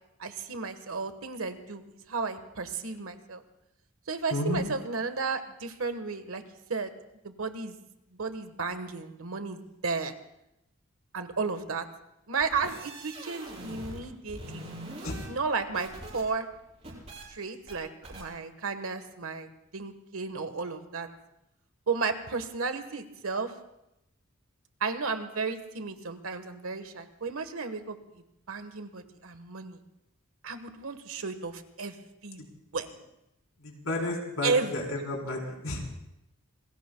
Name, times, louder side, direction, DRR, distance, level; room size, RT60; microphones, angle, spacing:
voice 1, 0.2-3.4 4.1-6.4 6.7-6.9 7.2-7.8 8.1-10.1 11.1-11.8 12.3-14.7 15.3-15.9 16.1-16.5 17.3-19.5 19.7-21.1 21.9-23.5 24.8-28.0 28.5-29.8 30.4-31.9 32.2-32.4 32.7-32.9 34.4-34.8, right 4 dB, 85° right, 9 dB, 1.3 m, -33 dB
voice 2, 4.3-4.6 15.0-15.2 33.6-35.8, left 1 dB, 80° left, -1 dB, 3.9 m, -32 dB
sound 1, 12.4-14.0 14.3-16.2 16.5-17.2 17.7-17.8 18.0-18.2, right 1 dB, 30° right, 6.4 m, -43 dB
27.5 x 20.0 x 2.3 m, 0.87 s
head